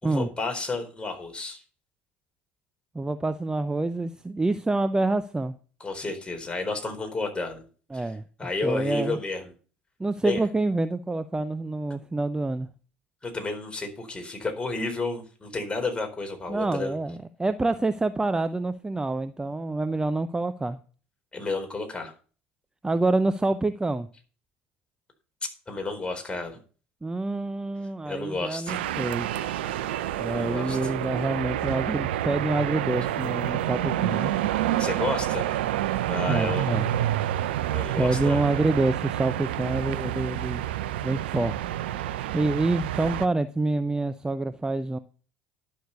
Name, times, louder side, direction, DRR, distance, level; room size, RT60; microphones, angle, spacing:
voice 1, 0.0-1.6 5.8-7.6 7.9-8.1 8.4-9.5 10.2-10.4 13.2-16.9 21.3-22.1 25.7-26.6 28.1-28.8 30.3-30.9 34.8-35.6 36.1-36.8 37.7-38.6, left 3 dB, 15° left, 4.2 m, -31 dB
voice 2, 2.9-5.5 7.9-8.2 8.6-9.2 10.0-12.7 16.5-20.8 22.8-24.1 27.0-29.3 30.2-34.3 36.3-36.9 38.0-40.6 41.0-41.6 42.3-45.0, right 2 dB, 10° right, 0.7 m, -27 dB
sound 1, 28.7-43.3, right 13 dB, 75° right, 0.7 m, -28 dB
11.5 x 6.6 x 6.8 m
hypercardioid pair, 70°, 6 cm